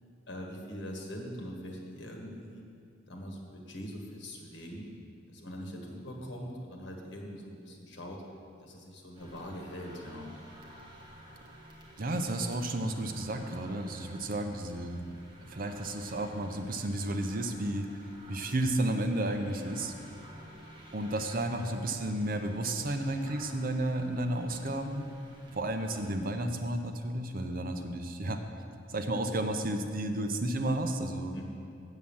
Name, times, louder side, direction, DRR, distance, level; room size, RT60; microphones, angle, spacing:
voice 1, 0.3-2.6 3.1-4.9 5.3-8.2 8.6-10.3 31.3-31.4, equal, 70° left, 1 dB, 1.6 m, -42 dB
sound 1, 9.1-26.2, equal, 25° right, 1.4 m, -52 dB
voice 2, 12.0-15.0 15.5-17.9 18.3-19.9 20.9-25.1 25.5-28.4 28.9-31.3, right 1 dB, 50° right, 6 dB, 0.7 m, -32 dB
8.1 x 7.4 x 7.1 m, 2.5 s
head